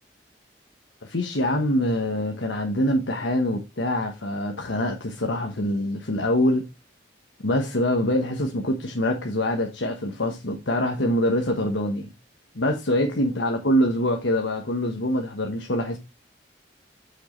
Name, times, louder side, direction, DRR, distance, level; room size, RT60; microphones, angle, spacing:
voice 1, 1.0-6.7 7.4-12.1 12.5-16.0, left 1 dB, 80° left, 1.3 m, -24 dB
8.1 x 6.5 x 3.3 m
head